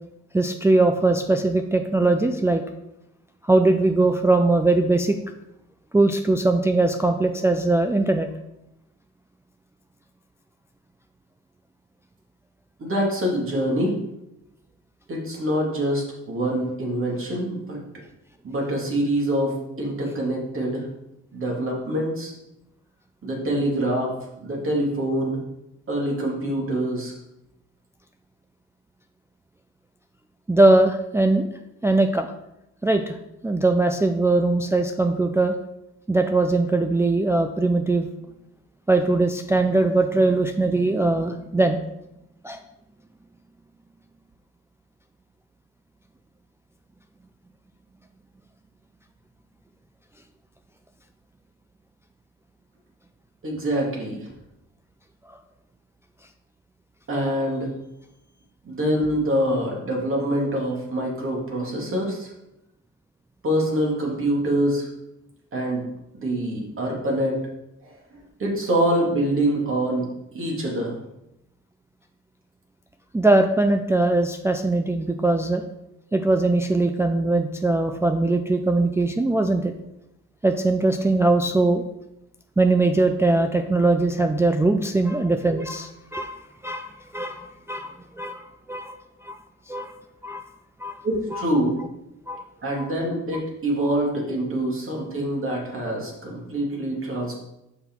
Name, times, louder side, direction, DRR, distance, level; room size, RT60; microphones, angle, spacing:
voice 1, 0.3-2.6 3.4-5.2 5.9-8.3 30.5-31.5 31.8-32.3 32.8-33.2 33.4-35.6 36.1-38.1 38.9-41.8 42.4-42.6 73.1-75.6 76.1-79.7 80.4-81.8 82.6-86.4 86.6-88.9 89.2-89.4 89.7-89.9 90.2-90.4 90.8-91.0 91.3-91.4 92.3-92.4 92.8-92.9, right 2 dB, 10° right, 5 dB, 0.4 m, -21 dB
voice 2, 12.8-13.9 15.1-17.8 18.4-20.9 21.3-22.3 23.2-25.4 25.9-27.1 53.4-54.3 57.1-57.7 58.6-62.3 63.4-64.9 65.5-65.9 66.1-67.4 67.8-67.9 68.4-70.1 70.3-71.0 91.0-91.8 92.6-97.3, right 1 dB, 45° right, -2 dB, 2.3 m, -25 dB
5.8 x 5.5 x 4.5 m, 0.89 s
cardioid pair, 90°, 30 cm